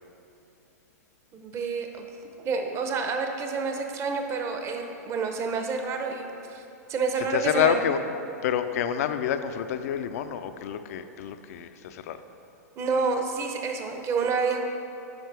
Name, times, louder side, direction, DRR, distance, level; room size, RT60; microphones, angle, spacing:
voice 1, 1.3-2.1 2.4-6.6 6.9-7.8 12.8-14.6, right 4 dB, 30° right, 4 dB, 0.8 m, -29 dB
voice 2, 7.3-8.0 8.4-12.2, left 9 dB, 65° left, 10 dB, 0.4 m, -27 dB
9.1 x 5.8 x 3.3 m, 2.8 s
hypercardioid pair, 110°, 9 cm